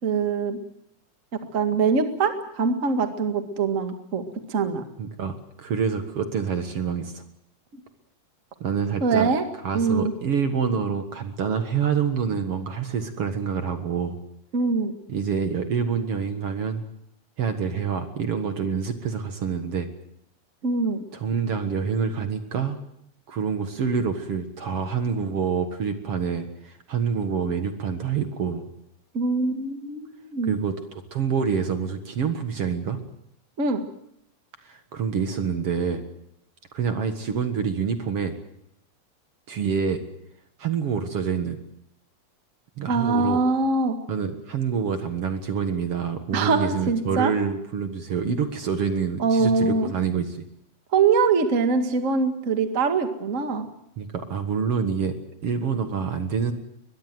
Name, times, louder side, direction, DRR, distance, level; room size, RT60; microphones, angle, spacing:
voice 1, 0.0-0.6 1.3-4.8 9.0-9.4 9.7-10.1 14.5-14.9 20.6-21.0 29.1-30.6 33.6-33.8 42.9-44.0 46.3-47.3 49.2-49.9 50.9-53.7, right 4 dB, 30° right, 6 dB, 2.0 m, -23 dB
voice 2, 5.0-7.2 8.6-9.3 9.6-14.2 15.1-16.8 17.4-19.9 21.1-22.8 23.3-28.7 30.5-33.0 34.6-36.0 36.7-38.3 39.5-40.0 40.6-41.6 42.8-43.4 44.1-50.4 54.0-55.1 55.4-56.5, right 6 dB, 55° right, 7 dB, 2.4 m, -27 dB
22.0 x 22.0 x 7.8 m, 0.76 s
omnidirectional pair, 3.4 m